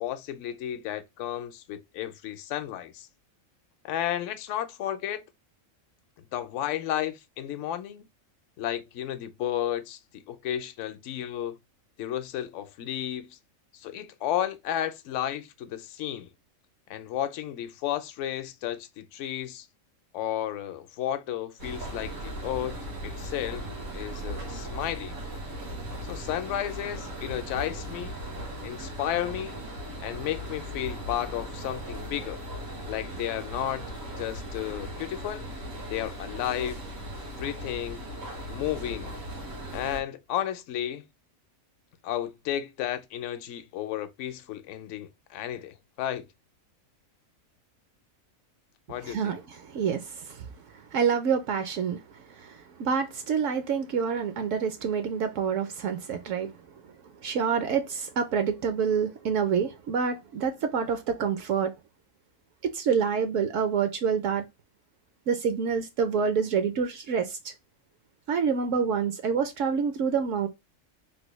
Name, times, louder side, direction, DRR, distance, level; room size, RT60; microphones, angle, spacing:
voice 1, 0.0-3.1 3.8-5.2 6.3-8.1 8.6-11.6 12.0-13.4 13.7-16.3 16.9-19.7 20.1-22.8 23.0-23.7 23.9-25.2 26.1-28.1 28.6-29.6 30.0-32.4 32.9-33.8 34.2-35.4 35.9-36.8 37.4-38.0 38.5-39.1 39.7-41.0 42.0-46.3 48.9-49.4, left 11 dB, 70° left, 0.8 m, -33 dB
sound 1, 21.6-40.0, equal, 90° right, 1.6 m, -38 dB
voice 2, 49.0-50.5 50.9-56.5 57.2-61.7 62.6-64.4 65.3-67.5 68.3-70.5, right 6 dB, 70° right, 0.9 m, -27 dB
3.3 x 2.2 x 2.9 m
omnidirectional pair, 1.4 m